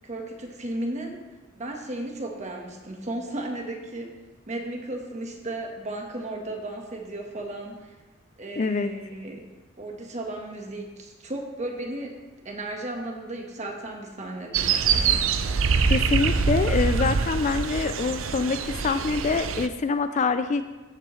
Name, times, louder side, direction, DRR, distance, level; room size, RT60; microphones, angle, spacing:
voice 1, 0.0-1.2 1.6-4.1 4.5-7.9 8.4-9.5 9.8-12.2 12.4-15.2, right 1 dB, 35° right, 2 dB, 1.4 m, -35 dB
voice 2, 8.6-8.9 15.9-20.6, left 4 dB, 35° left, 10 dB, 0.4 m, -25 dB
sound 1, 14.5-19.7, right 5 dB, 70° right, 0.5 m, -24 dB
14.5 x 7.6 x 3.2 m, 1.2 s
head